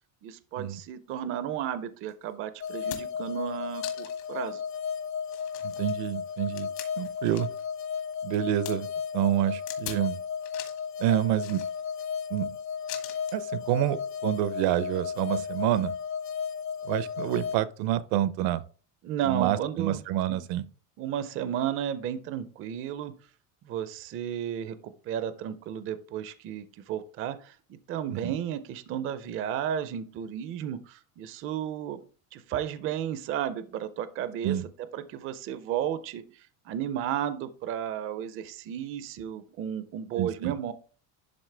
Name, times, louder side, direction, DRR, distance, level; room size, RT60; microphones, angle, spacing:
voice 1, 0.2-4.6 19.0-20.0 20.3-20.4 21.0-23.1 23.6-24.8 25.0-32.0 32.3-34.6 34.9-40.7, right 10 dB, 30° right, 0.4 m, -33 dB
sound 1, 2.1-2.2 2.6-3.3 3.8-4.3 4.7-4.8 5.2-7.7 8.0-8.7 9.7-10.1 10.4-10.9 11.4-12.1 12.9-13.4 14.5-14.6, left 12 dB, 75° left, 1.7 m, -42 dB
sound 2, 2.6-17.6, left 7 dB, 35° left, 0.4 m, -34 dB
voice 2, 5.6-6.7 7.0-7.5 8.2-8.9 9.1-10.2 11.0-11.6 12.3-12.5 13.3-15.9 16.8-18.6 19.2-20.6 28.1-28.4 34.4-34.6 40.2-40.5, right 12 dB, 70° right, 0.7 m, -28 dB
11.5 x 3.9 x 3.3 m
cardioid pair, 165°, 43 cm